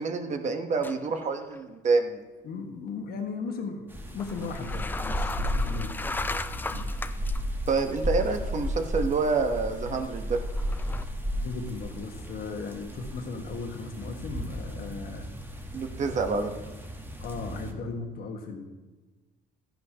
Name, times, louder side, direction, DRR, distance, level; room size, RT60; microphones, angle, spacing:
voice 1, 0.0-2.2 7.7-10.4 15.7-16.5, right 4 dB, 45° right, 6 dB, 1.0 m, -27 dB
sound 1, 0.8-1.3 1.5-1.6 4.2-7.4 8.0-8.1 10.5-11.0, left 3 dB, 10° left, 0.3 m, -36 dB
voice 2, 2.4-6.0 6.5-6.9 11.4-15.3 17.2-18.6, left 4 dB, 65° left, 4 dB, 1.5 m, -37 dB
sound 2, 3.9-17.7, equal, 10° right, 1.1 m, -34 dB
12.0 x 10.5 x 2.9 m, 1.2 s
cardioid pair, 110°, 17 cm